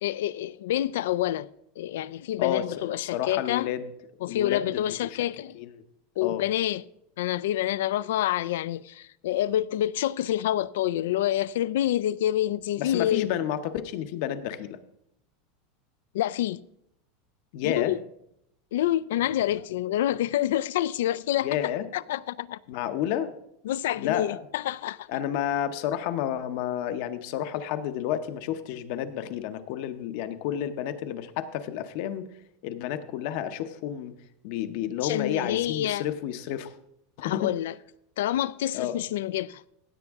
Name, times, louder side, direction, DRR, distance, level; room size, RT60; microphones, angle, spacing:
voice 1, 0.0-1.5 1.8-3.7 4.2-5.6 6.2-6.8 7.2-13.3 16.1-16.6 17.6-18.0 18.7-22.6 23.6-25.1 35.0-36.0 37.2-37.7 38.2-39.6, left 12 dB, 80° left, 0.4 m, -27 dB
voice 2, 2.4-3.9 4.2-5.0 5.5-5.7 6.2-6.4 12.8-14.8 17.5-17.9 21.4-21.9 22.7-23.3 24.0-24.4 25.1-32.2 32.6-34.1 34.4-36.7 37.2-37.5 38.7-39.0, left 10 dB, 50° left, 0.7 m, -30 dB
16.0 x 8.1 x 3.6 m
supercardioid pair, 175°, 0 cm